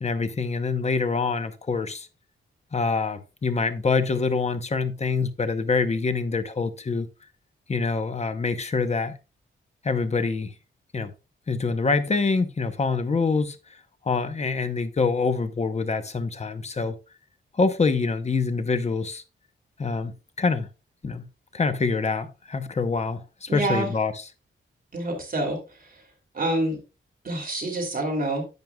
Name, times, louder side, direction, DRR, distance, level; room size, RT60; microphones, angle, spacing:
voice 1, 0.0-2.1 2.7-7.1 7.7-9.2 9.8-10.5 10.9-11.1 11.5-13.8 14.0-16.9 17.5-19.2 19.8-20.7 21.0-21.2 21.5-24.3, left 4 dB, 30° left, 0.8 m, -25 dB
voice 2, 23.5-23.9 24.9-25.6 26.3-26.8 27.2-28.4, right 2 dB, 40° right, 2.7 m, -26 dB
10.5 x 7.6 x 2.3 m
wide cardioid pair, 140°, 21 cm